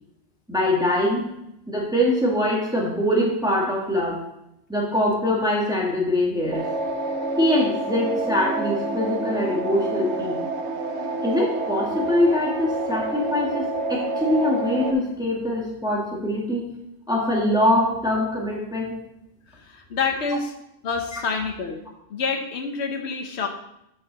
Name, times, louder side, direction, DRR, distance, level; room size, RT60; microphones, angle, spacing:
voice 1, 0.5-1.3 1.7-4.2 4.7-6.6 7.4-10.4 11.2-16.6 17.1-18.9 21.1-21.2, left 1 dB, 5° right, -3 dB, 1.8 m, -23 dB
sound 1, 6.5-14.9, right 2 dB, 80° right, 1.2 m, -28 dB
voice 2, 19.5-20.5 20.8-21.8 22.1-23.5, left 5 dB, 80° left, 3 dB, 1.2 m, -27 dB
13.0 x 5.4 x 4.1 m, 0.81 s
omnidirectional pair, 1.1 m